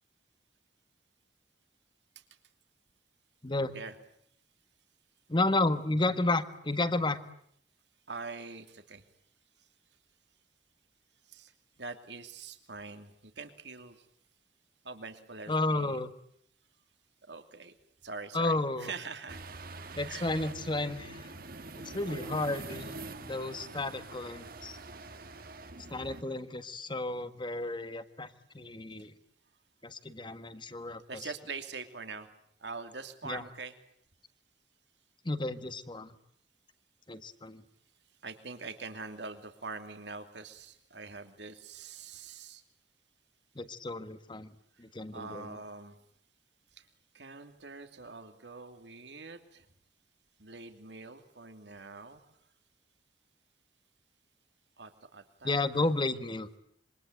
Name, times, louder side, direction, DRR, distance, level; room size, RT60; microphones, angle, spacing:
voice 1, 3.4-3.7 5.3-7.2 15.5-16.1 18.3-18.9 19.9-21.3 21.8-24.8 25.9-29.1 29.8-31.3 33.2-33.4 35.2-36.1 37.1-37.6 43.5-44.5 44.8-45.6 55.4-56.5, left 2 dB, 25° left, 11 dB, 1.6 m, -32 dB
voice 2, 8.1-9.0 11.3-11.5 11.8-14.1 14.8-16.0 17.3-17.7 18.0-19.4 20.1-20.3 22.0-22.3 31.1-32.3 32.6-33.7 38.2-42.6 44.8-44.9 45.1-46.0 46.7-46.9 47.1-49.7 50.4-52.2 54.8-55.6, right 4 dB, 70° right, 7 dB, 2.8 m, -44 dB
sound 1, 19.3-26.2, right 3 dB, 55° right, 1.7 m, -45 dB
26.5 x 24.0 x 9.1 m, 0.68 s
head